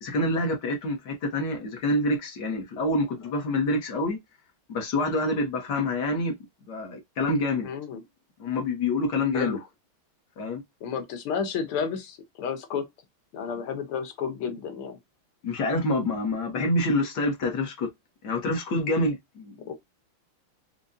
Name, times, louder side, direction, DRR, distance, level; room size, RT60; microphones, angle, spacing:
voice 1, 0.0-4.2 4.7-6.3 6.7-7.7 8.4-9.6 10.4-10.6 15.4-17.9 18.2-19.7, left 2 dB, 60° left, 1.5 m, -27 dB
voice 2, 7.6-8.0 9.3-9.6 10.8-12.8 13.3-15.0 19.7-19.8, left 6 dB, 85° left, 1.9 m, -31 dB
5.1 x 2.2 x 2.6 m
omnidirectional pair, 2.3 m